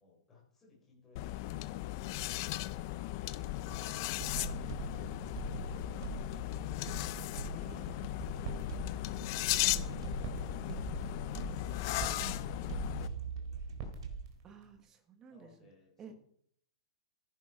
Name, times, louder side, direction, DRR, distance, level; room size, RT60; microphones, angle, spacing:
voice 1, 0.0-2.8 7.8-14.2 15.3-16.1, left 3 dB, 10° left, -3 dB, 4.9 m, -64 dB
sound 1, 1.2-13.1, left 16 dB, 30° left, 0.5 m, -37 dB
sound 2, 3.7-14.4, right 6 dB, 60° right, 2.2 m, -43 dB
sound 3, 6.8-14.8, right 4 dB, 35° right, 2.9 m, -49 dB
voice 2, 7.6-8.0 14.4-15.7 16.0-16.1, right 6 dB, 15° right, 7 dB, 1.4 m, -53 dB
14.5 x 10.5 x 5.0 m, 0.63 s
supercardioid pair, 180°, 3 cm